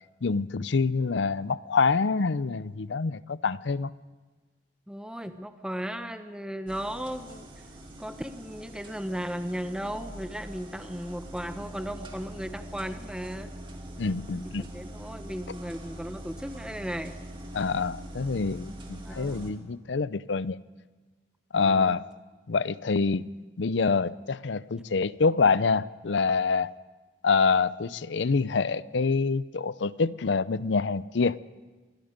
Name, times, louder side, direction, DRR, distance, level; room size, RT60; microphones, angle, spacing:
voice 1, 0.2-3.9 14.0-14.7 17.5-20.6 21.5-22.0 22.5-23.3 23.6-26.7 27.2-31.4, left 4 dB, 75° left, 17 dB, 0.6 m, -26 dB
voice 2, 4.9-7.5 8.0-13.5 14.6-17.2 19.1-19.5 21.6-22.0, equal, 5° right, 8 dB, 1.0 m, -36 dB
sound 1, 6.7-19.5, right 1 dB, 25° right, 2.7 m, -43 dB
25.5 x 21.0 x 5.2 m, 1.3 s
head